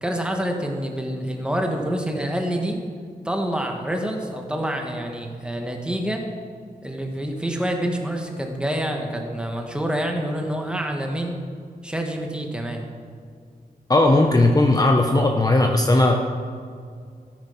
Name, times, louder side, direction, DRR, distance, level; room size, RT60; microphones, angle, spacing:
voice 1, 0.0-2.8 3.2-6.2 6.8-11.4 11.8-12.8, right 1 dB, 5° right, 2 dB, 1.7 m, -27 dB
voice 2, 13.9-16.3, left 2 dB, 25° left, 2 dB, 0.8 m, -17 dB
13.5 x 9.1 x 5.7 m, 2.2 s
wide cardioid pair, 90°, 16 cm